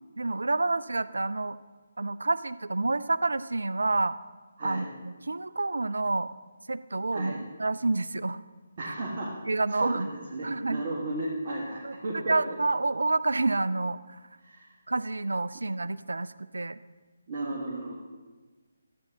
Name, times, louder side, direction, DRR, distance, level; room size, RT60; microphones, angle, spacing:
voice 1, 0.2-1.6 2.0-4.2 4.6-6.3 6.7-8.4 9.5-10.1 10.4-10.8 11.8-14.2 14.9-16.8, right 2 dB, 70° right, 16 dB, 0.3 m, -28 dB
voice 2, 8.8-9.3 9.7-12.3 14.4-14.7 17.3-17.9, right 2 dB, 40° right, -4 dB, 1.4 m, -34 dB
13.0 x 8.4 x 2.8 m, 1.3 s
figure-of-eight pair, 145°, 0 cm